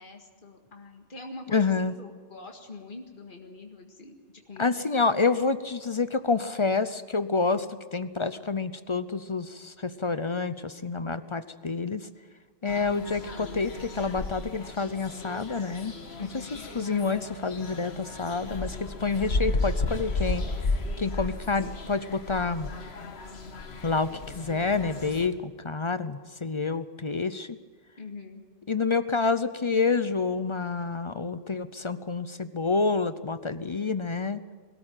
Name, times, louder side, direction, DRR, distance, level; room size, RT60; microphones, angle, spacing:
voice 1, 0.0-4.9 16.2-16.7 28.0-28.4, left 3 dB, 55° left, 2 dB, 2.1 m, -44 dB
voice 2, 1.5-1.9 4.6-12.1 12.6-15.9 16.7-20.5 21.0-22.7 23.8-27.6 28.7-34.4, left 4 dB, 35° left, 13 dB, 0.6 m, -28 dB
sound 1, 12.7-25.3, left 3 dB, 80° left, 1.7 m, -34 dB
22.0 x 13.5 x 9.1 m, 1.5 s
omnidirectional pair, 1.1 m